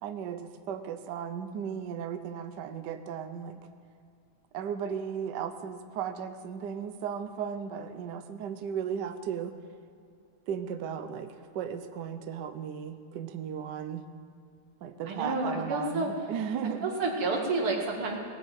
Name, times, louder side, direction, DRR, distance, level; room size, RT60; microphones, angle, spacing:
voice 1, 0.0-3.6 4.5-9.5 10.5-14.0 14.8-17.0, right 8 dB, 65° right, 9 dB, 1.2 m, -36 dB
voice 2, 15.1-16.1 16.8-18.2, right 3 dB, 90° right, 0 dB, 3.0 m, -29 dB
18.5 x 9.2 x 7.5 m, 2.5 s
omnidirectional pair, 2.3 m